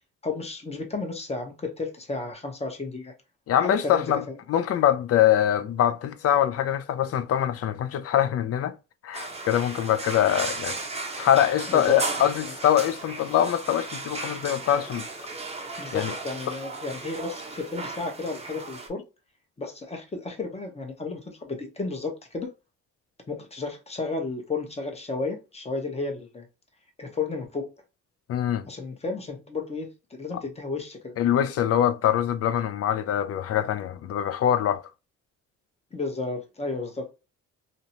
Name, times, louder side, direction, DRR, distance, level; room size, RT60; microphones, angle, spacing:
voice 1, 0.2-3.1 3.6-4.2 11.7-12.0 12.4-12.5 15.8-19.0 19.6-22.5 23.3-26.5 27.0-27.7 28.7-31.2 35.9-37.1, left 3 dB, 20° left, 0.8 m, -33 dB
voice 2, 3.5-4.2 4.5-8.7 9.0-10.8 11.2-15.1 15.9-16.1 28.3-28.6 31.2-34.8, left 10 dB, 50° left, 0.4 m, -23 dB
sound 1, 9.1-18.9, right 3 dB, 20° right, 0.6 m, -35 dB
2.6 x 2.1 x 2.8 m
cardioid pair, 90°, 30 cm